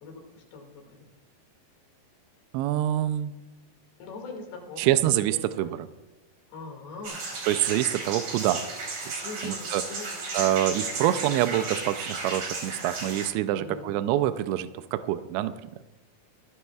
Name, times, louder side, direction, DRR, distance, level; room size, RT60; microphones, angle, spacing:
voice 1, 0.0-1.1 4.0-5.0 5.3-5.7 6.5-7.2 9.2-10.3 13.5-13.9, left 3 dB, 70° left, 1 dB, 4.2 m, -42 dB
voice 2, 2.5-3.3 4.8-5.9 7.4-8.6 9.1-9.8 10.3-15.5, right 13 dB, 85° right, 11 dB, 2.7 m, -26 dB
sound 1, 7.0-13.3, right 3 dB, 60° right, 5.4 m, -34 dB
25.5 x 11.0 x 2.3 m, 1.0 s
omnidirectional pair, 5.0 m